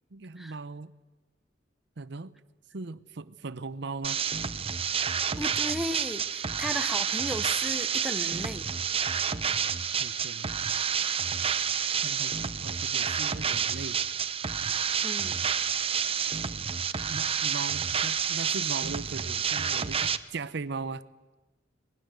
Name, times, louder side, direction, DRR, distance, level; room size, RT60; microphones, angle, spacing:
voice 1, 0.1-0.9 2.0-2.3 2.7-4.2 10.0-10.5 12.0-12.3 12.6-14.0 17.1-21.0, right 4 dB, 65° right, 15 dB, 0.7 m, -38 dB
sound 1, 4.0-20.2, right 7 dB, 30° right, 0.8 m, -29 dB
voice 2, 5.4-8.7 15.0-15.4, equal, ahead, 8 dB, 0.9 m, -35 dB
25.5 x 20.0 x 7.9 m, 1.1 s
head